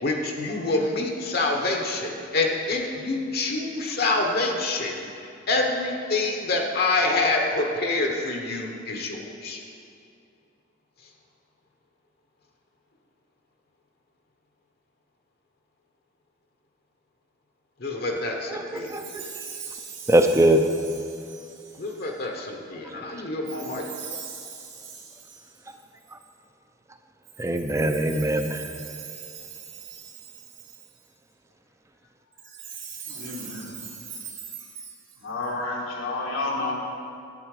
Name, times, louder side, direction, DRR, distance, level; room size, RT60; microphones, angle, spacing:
voice 1, 0.0-9.6 17.8-18.9 21.8-23.8, left 2 dB, 50° left, 2 dB, 0.9 m, -26 dB
voice 2, 18.5-19.3 20.1-20.7 22.9-23.0 27.4-28.7, right 1 dB, 15° right, 7 dB, 0.5 m, -22 dB
Chime, 18.8-22.1 23.5-26.3 27.2-31.1 32.3-35.5, right 6 dB, 70° right, 3.0 m, -41 dB
voice 3, 33.1-33.8 35.2-36.7, left 2 dB, 85° left, -2 dB, 1.6 m, -30 dB
11.0 x 8.4 x 4.8 m, 2.5 s
head